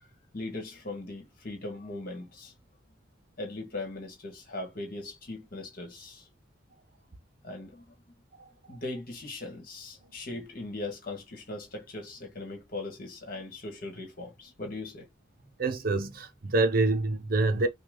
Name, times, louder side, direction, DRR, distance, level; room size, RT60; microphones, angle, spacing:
voice 1, 0.3-2.5 3.4-6.3 7.4-7.9 8.7-15.1, left 2 dB, 45° left, 1.7 m, -39 dB
voice 2, 15.6-17.7, right 2 dB, 45° right, 0.6 m, -26 dB
5.9 x 2.3 x 3.8 m
head